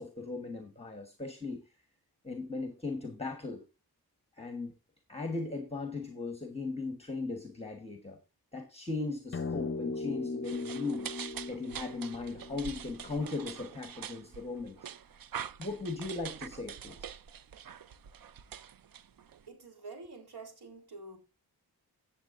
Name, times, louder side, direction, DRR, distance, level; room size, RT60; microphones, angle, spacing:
voice 1, 0.0-1.6 2.2-3.6 4.4-4.7 5.1-8.2 8.5-11.1 11.5-14.9 15.6-17.1, left 3 dB, 15° left, 1.2 m, -38 dB
sound 1, 9.3-13.9, left 3 dB, 35° left, 0.7 m, -38 dB
sound 2, 10.4-19.5, right 8 dB, 65° right, 0.6 m, -45 dB
voice 2, 19.5-21.2, right 3 dB, 85° right, 3.7 m, -47 dB
16.0 x 7.3 x 2.5 m
wide cardioid pair, 155°, 38 cm